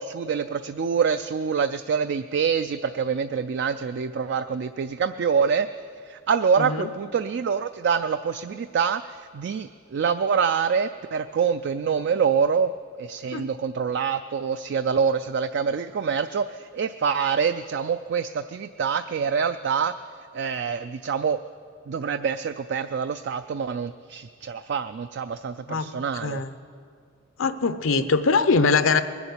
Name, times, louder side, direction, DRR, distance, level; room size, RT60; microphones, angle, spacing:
voice 1, 0.0-5.7 6.0-12.7 13.0-19.9 20.3-21.4 21.9-26.4, right 6 dB, 60° right, 10 dB, 0.3 m, -25 dB
voice 2, 6.6-6.9 13.3-13.5 25.7-25.9 26.2-26.5 27.4-29.0, left 4 dB, 85° left, 11 dB, 0.7 m, -22 dB
20.5 x 7.1 x 8.1 m, 2.2 s
head